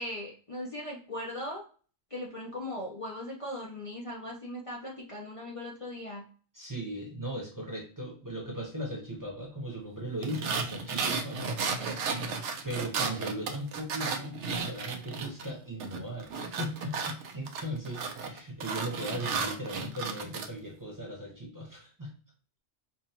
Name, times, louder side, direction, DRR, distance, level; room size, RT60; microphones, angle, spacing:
voice 1, 0.0-1.6 2.1-6.2, left 1 dB, 30° left, -4 dB, 0.8 m, -39 dB
voice 2, 6.5-11.6 12.6-22.1, right 1 dB, 15° right, -2 dB, 1.0 m, -38 dB
sound 1, 10.2-15.5 15.8-20.5, right 4 dB, 75° right, 1.0 m, -34 dB
5.3 x 2.4 x 2.9 m, 0.40 s
omnidirectional pair, 1.2 m